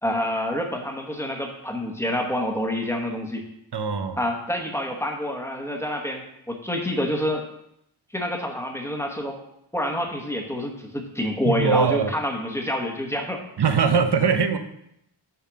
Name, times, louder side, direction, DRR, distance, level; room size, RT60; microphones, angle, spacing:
voice 1, 0.0-3.4 4.2-7.5 8.1-9.4 9.7-13.4, left 1 dB, 5° left, 2 dB, 1.2 m, -27 dB
voice 2, 3.7-4.2 11.5-12.1 13.6-14.6, right 6 dB, 55° right, 9 dB, 0.8 m, -21 dB
7.0 x 4.2 x 6.3 m, 0.77 s
wide cardioid pair, 100°, 48 cm